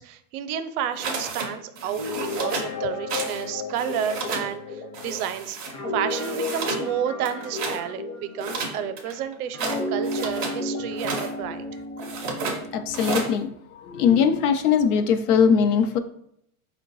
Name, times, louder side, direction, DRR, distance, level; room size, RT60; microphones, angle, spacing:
voice 1, 0.0-5.6 5.9-11.7, right 9 dB, 75° right, 11 dB, 0.6 m, -31 dB
sound 1, 1.0-1.5 1.7-2.7 3.1-3.4 3.7-4.5 4.9-5.7 6.1-6.8 7.2-7.8 8.4-10.6 10.9-11.3 12.0-12.6 12.9-13.3, right 3 dB, 20° right, 0.4 m, -31 dB
Guitar, 1.9-9.1 9.5-13.2, left 2 dB, 50° left, 0.9 m, -33 dB
voice 2, 12.7-16.0, left 7 dB, 85° left, 10 dB, 0.6 m, -21 dB
4.5 x 2.2 x 3.9 m, 0.72 s
supercardioid pair, 165°, 44 cm